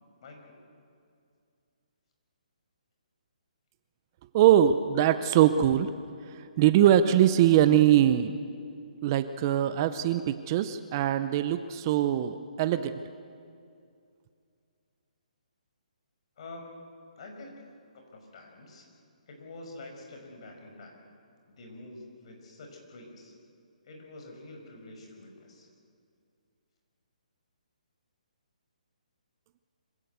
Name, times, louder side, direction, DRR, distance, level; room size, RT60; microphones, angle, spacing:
voice 1, 0.2-0.6 16.4-16.7 17.2-17.5 17.9-18.9 19.3-21.0 21.5-23.3 23.8-25.7, left 2 dB, 45° left, 2 dB, 5.7 m, -47 dB
voice 2, 4.3-5.9 6.2-8.4 9.0-13.0, right 11 dB, 25° right, 11 dB, 0.7 m, -22 dB
25.5 x 16.5 x 8.1 m, 2.4 s
hypercardioid pair, 160°, 4 cm